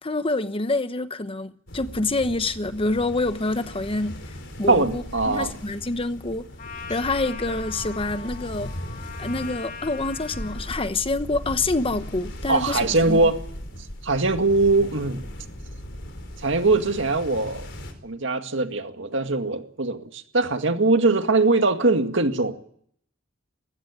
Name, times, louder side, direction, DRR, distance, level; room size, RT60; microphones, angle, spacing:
voice 1, 0.0-6.5 6.9-8.7 9.2-13.3, left 2 dB, 30° left, 1.0 m, -27 dB
sound 1, 1.7-17.9, equal, 60° left, 4.5 m, -38 dB
voice 2, 4.7-5.5 12.5-13.4 14.0-15.2 16.4-17.7 18.0-22.5, right 3 dB, 70° right, 2.1 m, -21 dB
Trumpet, 6.6-10.9, left 6 dB, 45° left, 2.4 m, -40 dB
21.5 x 16.0 x 9.9 m
head